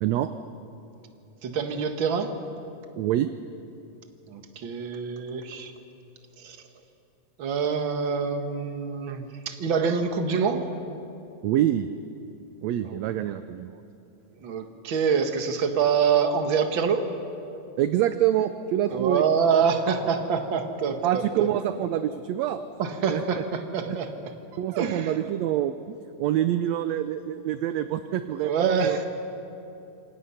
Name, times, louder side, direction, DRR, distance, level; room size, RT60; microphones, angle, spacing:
voice 1, 0.0-0.3 3.0-3.3 11.4-11.9 12.6-13.8 17.8-19.2 21.0-22.6 23.1-23.4 23.8-24.0 24.6-29.0, right 12 dB, 75° right, 10 dB, 1.7 m, -26 dB
voice 2, 1.4-2.3 4.3-5.7 6.4-6.6 7.4-10.6 12.8-13.0 14.4-17.0 18.9-21.5 22.8-24.1 24.7-25.1 28.4-29.0, right 6 dB, 45° right, 6 dB, 1.9 m, -26 dB
27.0 x 25.5 x 5.8 m, 2.8 s
omnidirectional pair, 3.6 m